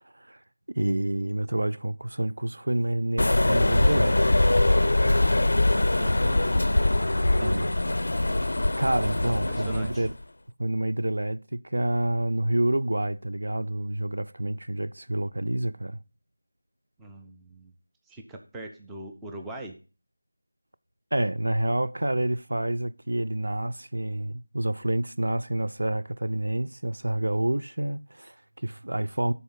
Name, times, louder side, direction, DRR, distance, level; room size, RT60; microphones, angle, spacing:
voice 1, 0.7-4.7 7.4-7.7 8.8-10.1 10.6-16.0 21.1-29.3, right 1 dB, 90° right, 0.5 m, -28 dB
sound 1, 3.2-10.1, left 1 dB, 70° left, 0.4 m, -23 dB
voice 2, 6.0-6.5 9.5-10.1 17.0-17.7 18.1-19.7, right 1 dB, 5° right, 0.4 m, -41 dB
11.5 x 4.2 x 5.5 m
figure-of-eight pair, 180°, 0 cm